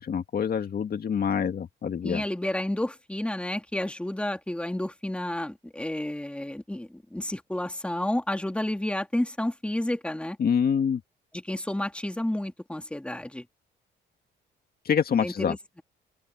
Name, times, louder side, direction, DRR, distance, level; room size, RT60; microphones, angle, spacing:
voice 1, 0.0-2.2 10.4-11.0 14.9-15.6, left 7 dB, 50° left, 1.9 m, -26 dB
voice 2, 2.0-10.4 11.3-13.4 15.2-15.8, left 1 dB, 5° left, 2.4 m, -31 dB
open air
cardioid pair, 90°, 20 cm